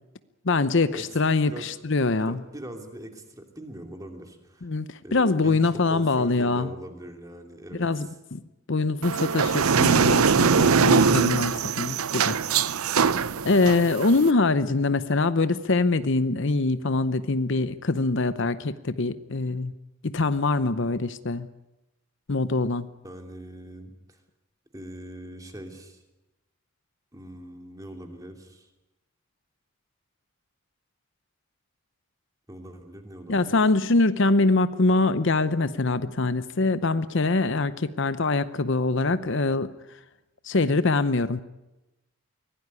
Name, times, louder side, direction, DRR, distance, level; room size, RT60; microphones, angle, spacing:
voice 1, 0.4-2.4 4.6-6.7 7.8-8.4 8.7-12.4 13.4-19.7 20.0-21.5 22.3-22.9 33.3-39.7 40.4-41.4, left 3 dB, 55° left, 13 dB, 0.8 m, -24 dB
voice 2, 2.2-4.7 5.0-8.1 23.0-24.2 24.7-26.0 27.1-28.7 32.5-33.6, right 1 dB, 15° right, 4 dB, 2.9 m, -42 dB
sound 1, 9.0-14.3, right 5 dB, 80° right, 0.7 m, -22 dB
24.0 x 17.0 x 9.6 m, 0.99 s
head